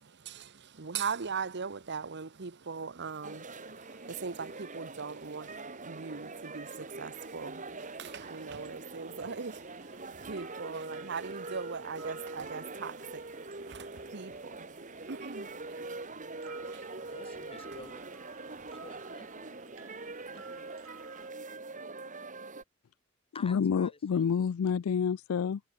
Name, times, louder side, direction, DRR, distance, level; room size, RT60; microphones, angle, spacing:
voice 1, 0.0-17.1, right 5 dB, 55° right, 1.0 m, -41 dB
sound 1, 3.2-22.6, right 3 dB, 35° right, 4.6 m, -43 dB
sound 2, 7.1-21.3, right 6 dB, 70° right, 5.1 m, -58 dB
voice 2, 17.1-18.0 18.8-19.8 20.3-20.4 23.3-24.3, left 3 dB, 25° left, 4.1 m, -50 dB
voice 3, 23.4-25.6, left 6 dB, 70° left, 0.4 m, -28 dB
head